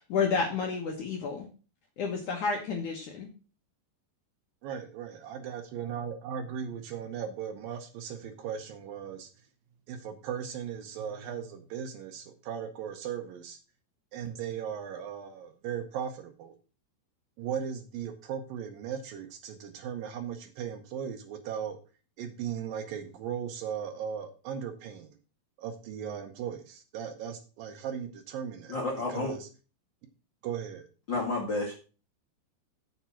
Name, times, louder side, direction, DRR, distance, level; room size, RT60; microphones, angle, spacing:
voice 1, 0.0-1.5 2.0-3.3, left 5 dB, 75° left, 1 dB, 1.8 m, -30 dB
voice 2, 4.6-9.3 9.9-13.6 14.1-16.5 17.4-21.8 22.2-25.1 25.6-28.8 29.1-29.5 30.4-30.9, right 8 dB, 85° right, 5 dB, 2.0 m, -37 dB
voice 3, 28.7-29.3 31.1-31.7, left 2 dB, 50° left, -2 dB, 1.4 m, -30 dB
7.3 x 7.3 x 5.7 m, 0.35 s
omnidirectional pair, 5.4 m